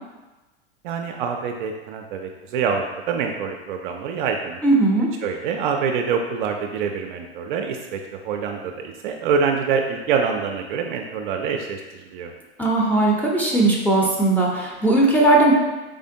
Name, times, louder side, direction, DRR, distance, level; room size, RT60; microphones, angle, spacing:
voice 1, 0.8-4.6 5.2-12.3, right 6 dB, 50° right, 3 dB, 0.4 m, -25 dB
voice 2, 4.6-5.1 12.6-15.5, right 2 dB, 5° left, -3 dB, 0.6 m, -18 dB
3.7 x 3.4 x 2.6 m, 1.1 s
hypercardioid pair, 95°, 33 cm